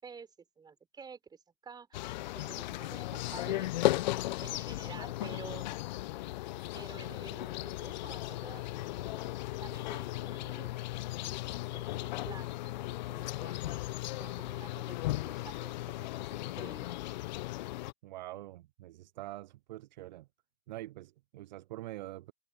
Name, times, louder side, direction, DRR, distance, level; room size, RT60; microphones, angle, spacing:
voice 1, 0.0-3.7 4.4-5.8 6.7-11.4 11.6-17.2, right 6 dB, 10° right, 4.2 m, -51 dB
sound 1, 1.9-17.9, left 17 dB, 35° left, 0.8 m, -36 dB
voice 2, 18.0-20.3 20.7-22.3, right 16 dB, 35° right, 0.7 m, -45 dB
figure-of-eight pair, 125°, 37 cm